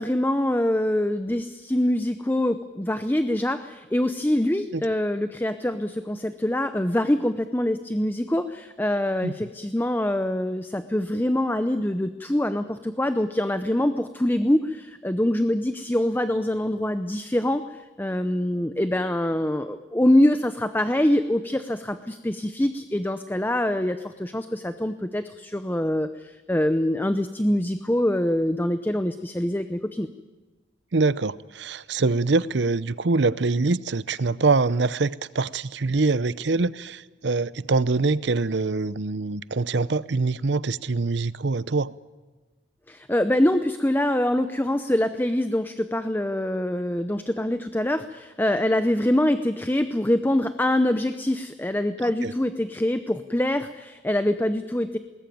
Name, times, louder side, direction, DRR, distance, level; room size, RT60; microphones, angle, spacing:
voice 1, 0.0-30.1 42.9-55.0, left 1 dB, 10° left, 0.7 m, -24 dB
voice 2, 30.9-41.9 52.0-52.3, right 3 dB, 65° right, 0.7 m, -24 dB
21.5 x 19.5 x 9.3 m
head